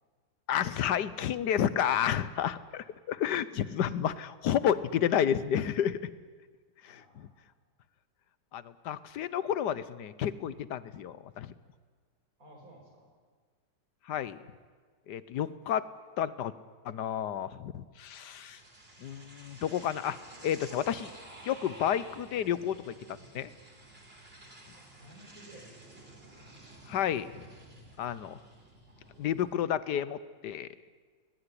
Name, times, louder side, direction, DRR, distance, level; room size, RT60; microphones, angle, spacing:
voice 1, 0.5-6.1 6.8-7.3 8.5-11.5 14.1-14.4 15.1-15.8 16.2-16.5 16.8-18.6 19.0-20.2 20.4-21.1 21.5-23.5 26.9-27.5 28.0-28.4 29.2-30.2 30.4-30.7, left 9 dB, 70° left, 16 dB, 1.4 m, -31 dB
voice 2, 6.9-7.5 12.4-13.1 24.7-25.8, right 1 dB, 50° right, 2 dB, 5.6 m, -55 dB
sound 1, 18.1-29.6, right 1 dB, 30° right, 4.0 m, -52 dB
21.5 x 21.0 x 9.9 m, 1.5 s
omnidirectional pair, 2.0 m